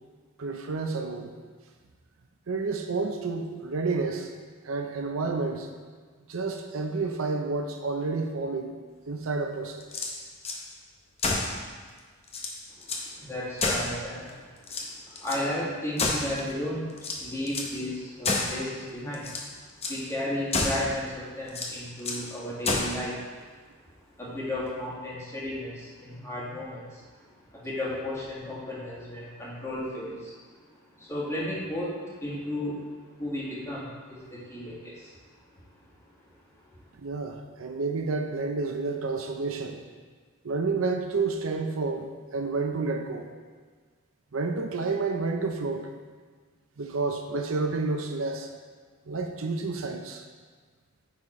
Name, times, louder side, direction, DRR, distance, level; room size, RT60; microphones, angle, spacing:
voice 1, 0.4-1.3 2.5-4.3 4.6-5.7 6.3-8.8 9.1-9.8 36.9-39.8 40.4-43.3 44.3-45.9 46.8-48.5 49.1-50.2, right 3 dB, 70° right, 4 dB, 0.6 m, -30 dB
sound 1, 9.8-10.6 11.2-11.6 12.0-12.1 12.3-13.1 13.6-14.3 14.6-15.4 16.0-16.5 17.0-17.8 18.2-18.6 19.1-19.5 19.8-20.0 20.5-20.9 21.5-22.3 22.6-23.0, left 3 dB, 30° left, 0.8 m, -30 dB
voice 2, 12.7-19.4 19.7-23.5 24.2-35.2 35.5-35.6 36.5-36.9, left 1 dB, 15° left, -7 dB, 1.8 m, -34 dB
9.6 x 4.1 x 4.3 m, 1.5 s
head